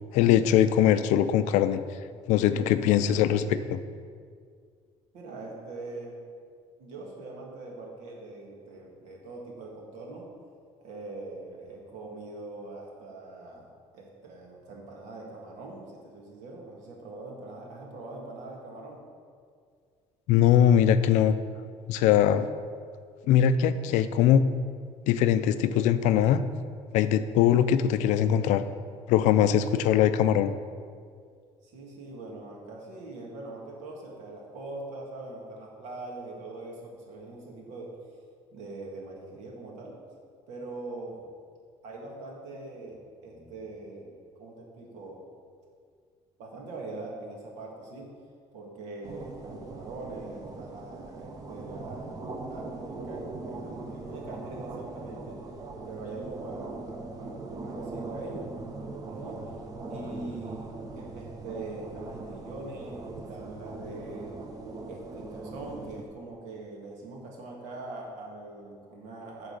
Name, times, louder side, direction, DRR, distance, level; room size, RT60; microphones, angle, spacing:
voice 1, 0.1-1.8 2.3-3.8 20.3-21.4 21.9-22.5 23.3-24.4 25.1-26.4 26.9-28.6 29.1-30.5, left 10 dB, 85° left, 12 dB, 0.4 m, -21 dB
voice 2, 5.1-6.1 6.8-10.3 10.8-13.7 13.9-19.0 23.9-24.0 31.6-37.9 38.5-39.9 40.5-41.3 41.8-44.1 44.4-45.2 46.4-48.2 48.5-52.2 52.5-55.4 55.8-58.5 58.8-59.4 59.9-64.4 64.9-69.5, right 2 dB, 75° right, -2 dB, 2.0 m, -42 dB
sound 1, 49.0-66.0, right 3 dB, 30° right, 0.8 m, -40 dB
8.9 x 3.9 x 6.7 m, 2.1 s
cardioid pair, 155°, 12 cm